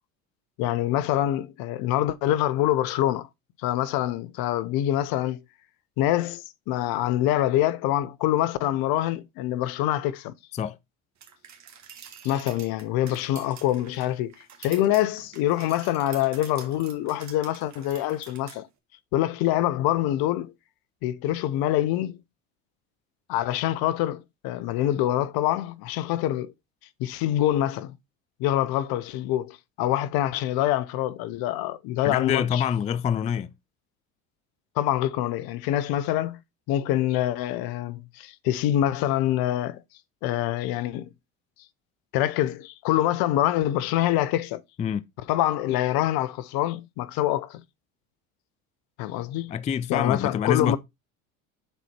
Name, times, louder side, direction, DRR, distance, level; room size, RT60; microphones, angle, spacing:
voice 1, 0.6-3.3 3.6-5.4 6.0-10.3 12.2-14.3 14.6-18.7 19.1-20.5 21.0-22.2 23.3-26.5 27.0-28.0 28.4-32.6 34.8-36.4 36.7-39.8 40.2-41.1 42.1-44.6 45.3-47.6 49.0-49.5 49.9-50.8, left 13 dB, 60° left, 0.7 m, -25 dB
sound 1, 11.2-18.6, right 8 dB, 40° right, 1.8 m, -47 dB
voice 2, 32.0-33.5 44.8-45.0 49.5-50.8, left 8 dB, 20° left, 0.3 m, -26 dB
6.9 x 4.2 x 4.4 m
hypercardioid pair, 85°, 41 cm